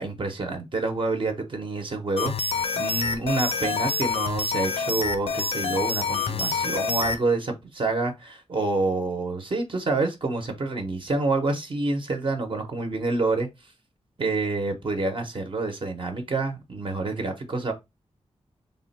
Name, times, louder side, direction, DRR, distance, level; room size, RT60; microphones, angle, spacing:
voice 1, 0.0-2.3 2.7-13.5 14.2-17.7, right 3 dB, 45° right, 0.6 m, -27 dB
sound 1, 2.2-7.2, left 4 dB, 60° left, 0.4 m, -27 dB
3.4 x 2.1 x 3.9 m
wide cardioid pair, 140°, 11 cm